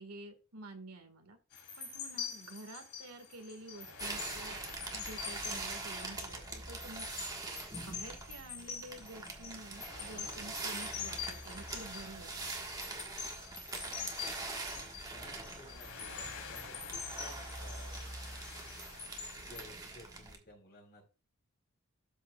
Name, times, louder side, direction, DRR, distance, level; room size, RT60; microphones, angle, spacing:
voice 1, 0.0-1.4 1.8-4.6 4.9-7.3 7.8-12.4, right 2 dB, 90° right, 6 dB, 1.8 m, -50 dB
sound 1, 1.5-19.6, left 6 dB, 80° left, 3.2 m, -45 dB
sound 2, 4.0-20.4, right 3 dB, 15° right, 1.5 m, -43 dB
voice 2, 13.9-14.3 14.7-18.0 19.4-21.0, left 1 dB, 45° left, 1 dB, 4.6 m, -56 dB
12.5 x 6.6 x 2.4 m, 0.34 s
head